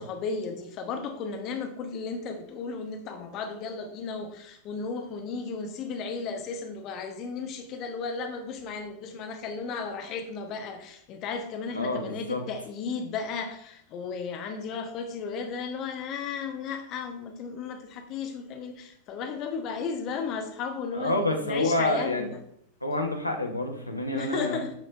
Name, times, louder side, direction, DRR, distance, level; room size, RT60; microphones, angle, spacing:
voice 1, 0.0-22.4 24.1-24.7, left 5 dB, 35° left, 5 dB, 1.0 m, -34 dB
voice 2, 11.7-12.4 20.9-22.3 22.8-24.6, left 1 dB, 85° left, 3 dB, 1.1 m, -28 dB
8.1 x 6.4 x 2.6 m, 0.69 s
figure-of-eight pair, 90°, 0 cm